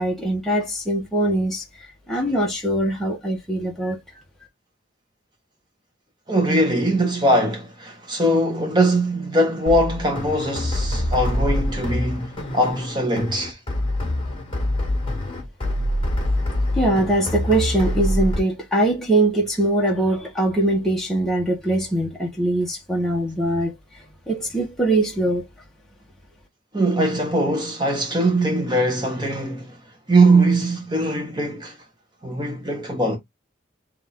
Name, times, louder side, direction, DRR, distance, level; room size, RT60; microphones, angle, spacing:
voice 1, 0.0-1.6 2.1-4.0 16.8-23.7 24.3-25.4, right 1 dB, ahead, 1.3 m, -22 dB
voice 2, 6.3-13.6 26.7-29.8 30.1-31.7 32.2-33.2, right 1 dB, 20° right, 1.6 m, -21 dB
sound 1, 9.7-18.4, left 1 dB, 25° left, 1.9 m, -25 dB
4.0 x 3.4 x 3.8 m
head